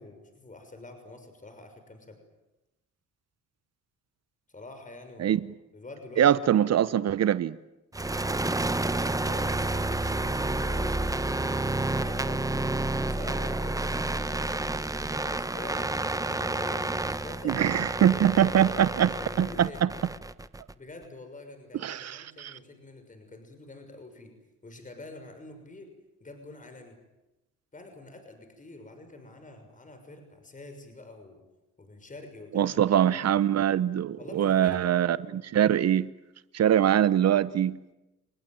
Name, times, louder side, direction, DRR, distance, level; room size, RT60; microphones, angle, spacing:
voice 1, 0.0-2.2 4.5-5.4 5.7-6.3 8.9-12.6 13.0-17.7 18.0-19.9 20.7-24.3 24.6-25.9 26.2-27.0 27.7-31.4 31.8-32.8 34.2-34.9, left 2 dB, 25° left, 6 dB, 6.2 m, -46 dB
voice 2, 6.2-7.6 17.4-19.1 19.4-19.9 21.8-22.5 32.5-36.1 36.5-37.8, right 10 dB, 55° right, 16 dB, 0.9 m, -23 dB
sound 1, 7.9-20.7, right 2 dB, 10° right, 1.0 m, -30 dB
29.5 x 19.0 x 9.3 m, 0.98 s
cardioid pair, 90°, 30 cm